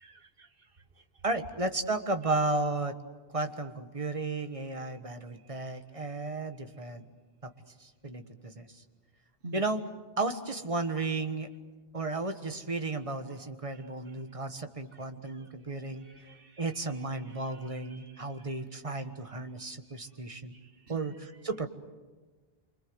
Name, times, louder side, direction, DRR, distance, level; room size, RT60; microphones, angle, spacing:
voice 1, 0.0-1.2 2.2-2.4 4.8-5.0 5.3-5.5 6.1-6.3 9.4-9.6 13.3-14.2 14.9-18.5 18.9-19.0 19.9-21.1, right 2 dB, 65° right, 8 dB, 1.6 m, -53 dB
voice 2, 1.2-3.0 3.3-7.0 7.4-7.5 7.8-8.8 9.5-9.8 10.2-11.5 11.9-16.0 16.6-20.5 20.9-21.1 21.4-21.7, right 2 dB, 35° right, 7 dB, 1.5 m, -33 dB
27.0 x 25.0 x 8.0 m, 1.3 s
omnidirectional pair, 1.0 m